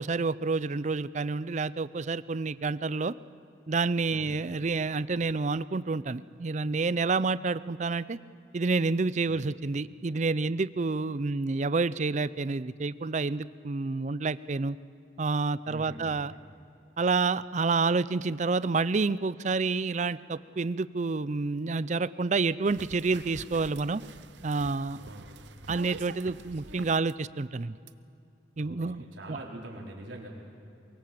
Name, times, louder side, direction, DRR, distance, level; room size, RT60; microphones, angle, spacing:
voice 1, 0.0-3.1 3.7-8.2 8.5-14.8 15.2-16.3 17.0-24.0 24.4-25.0 25.7-27.8 28.6-29.0 29.3-29.4, right 4 dB, 40° right, 17 dB, 0.5 m, -29 dB
voice 2, 15.6-16.4 24.9-25.4 28.6-30.3, right 1 dB, 90° right, -2 dB, 4.1 m, -44 dB
sound 1, 22.6-27.1 27.9-28.0, right 4 dB, 70° right, 0.8 m, -46 dB
23.5 x 23.0 x 7.7 m, 2.7 s
head